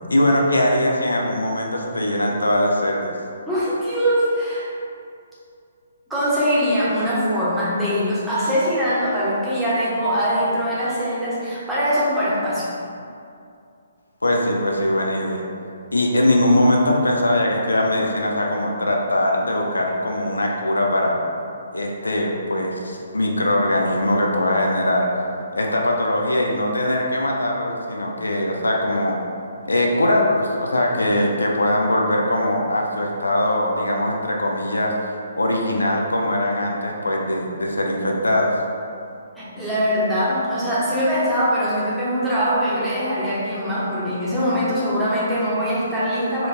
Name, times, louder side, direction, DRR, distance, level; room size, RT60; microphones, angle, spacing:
voice 1, 0.1-3.1 14.2-15.4 15.9-21.2 21.7-25.2 25.5-29.2 29.7-38.6, left 1 dB, 75° left, 0 dB, 0.4 m, -21 dB
voice 2, 3.5-4.7 6.1-12.7 39.4-46.5, equal, 5° right, -11 dB, 0.9 m, -22 dB
4.3 x 2.5 x 2.5 m, 2.4 s
figure-of-eight pair, 130°, 0 cm